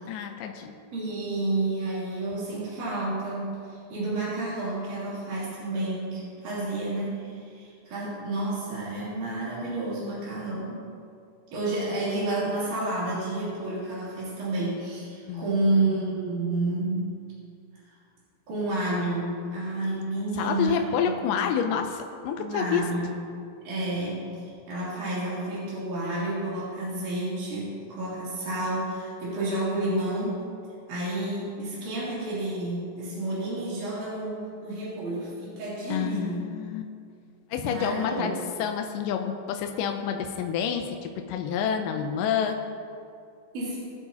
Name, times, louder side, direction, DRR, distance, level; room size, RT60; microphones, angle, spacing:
voice 1, 0.1-0.8 15.3-15.8 20.4-22.9 35.9-36.9 37.5-38.3 38.6-42.6, left 7 dB, 80° left, 4 dB, 2.2 m, -28 dB
voice 2, 0.9-10.8 11.5-17.1 18.5-20.9 21.4-21.5 22.3-23.2 23.6-30.4 30.9-36.4 37.6-38.3 43.5-43.8, right 2 dB, 60° right, -9 dB, 4.6 m, -30 dB
22.0 x 7.9 x 2.9 m, 2.3 s
omnidirectional pair, 4.0 m